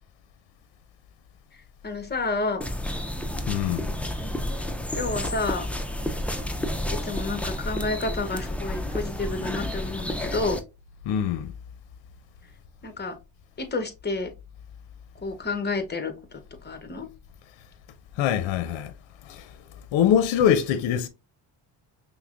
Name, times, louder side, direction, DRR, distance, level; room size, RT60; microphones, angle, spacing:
voice 1, 1.5-2.6 4.6-5.7 6.9-10.6 12.8-13.2 13.6-14.3 15.1-17.1, left 3 dB, 20° left, 0.9 m, -30 dB
sound 1, 2.6-10.6, left 1 dB, 5° left, 0.3 m, -30 dB
voice 2, 3.5-4.0 11.0-11.5 18.1-18.9 19.2-21.1, left 9 dB, 65° left, 0.6 m, -24 dB
5.6 x 2.2 x 2.4 m
cardioid pair, 80°, 49 cm